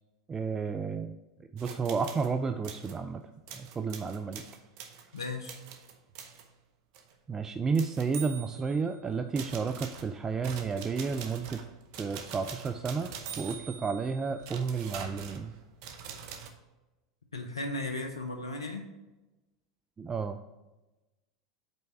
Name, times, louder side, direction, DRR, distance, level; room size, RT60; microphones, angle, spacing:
voice 1, 0.3-1.2 1.5-3.2 3.5-4.4 7.3-11.6 12.0-13.1 13.4-15.5 20.0-20.4, right 5 dB, 20° right, 8 dB, 0.3 m, -31 dB
sound 1, 1.6-2.3 2.6-3.0 3.5-6.5 6.9-7.1 7.7-8.9 9.4-16.5, right 7 dB, 60° right, 0.8 m, -44 dB
voice 2, 5.1-5.6 17.3-18.9, left 2 dB, 90° left, 4 dB, 0.6 m, -36 dB
5.3 x 4.5 x 5.4 m, 1.1 s
hypercardioid pair, 85°, 2 cm